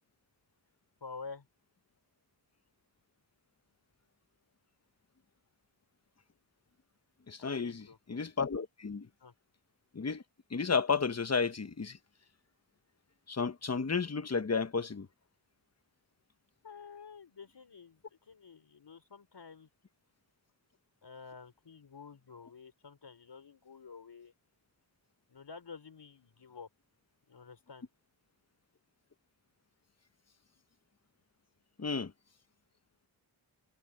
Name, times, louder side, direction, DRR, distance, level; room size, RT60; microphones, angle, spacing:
voice 1, 1.0-1.5 7.4-8.0 9.2-9.3 16.6-19.7 21.0-24.3 25.3-26.7 27.3-27.9, left 5 dB, 60° left, 4.5 m, -50 dB
voice 2, 7.3-9.1 9.9-10.2 10.5-12.0 13.3-15.1 31.8-32.1, left 5 dB, 35° left, 1.1 m, -32 dB
cardioid pair, 60°, 46 cm